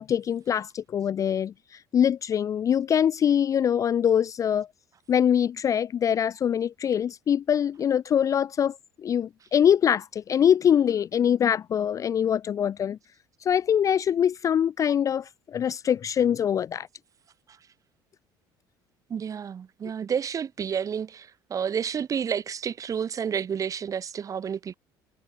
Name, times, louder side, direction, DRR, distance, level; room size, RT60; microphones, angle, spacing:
voice 1, 0.0-1.5 1.9-4.7 5.1-13.0 13.4-16.9, left 9 dB, 35° left, 0.4 m, -23 dB
voice 2, 19.1-24.8, right 7 dB, 35° right, 1.8 m, -30 dB
cardioid pair, 105°, 10 cm